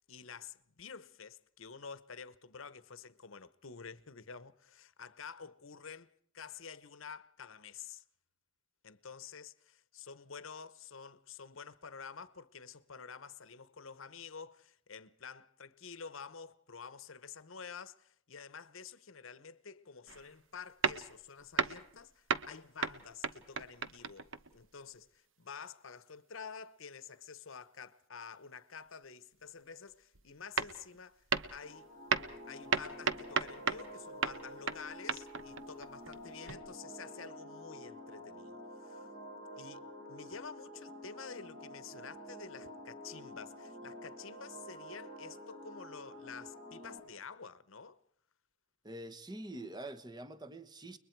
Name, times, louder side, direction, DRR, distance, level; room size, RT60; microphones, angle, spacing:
voice 1, 0.1-8.0 8.8-31.2 31.5-31.9 32.5-39.1 39.5-48.0, left 6 dB, 75° left, 1.0 m, -49 dB
sound 1, 20.1-20.3 20.8-22.0 22.3-24.6 30.1-30.2 30.6-31.0 31.3-31.7 32.1-33.9 34.2-36.6, right 5 dB, 70° right, 1.1 m, -36 dB
sound 2, 31.6-47.0, equal, 50° right, 6.4 m, -49 dB
voice 2, 48.8-51.0, right 1 dB, 20° right, 1.2 m, -45 dB
30.0 x 22.0 x 4.6 m
head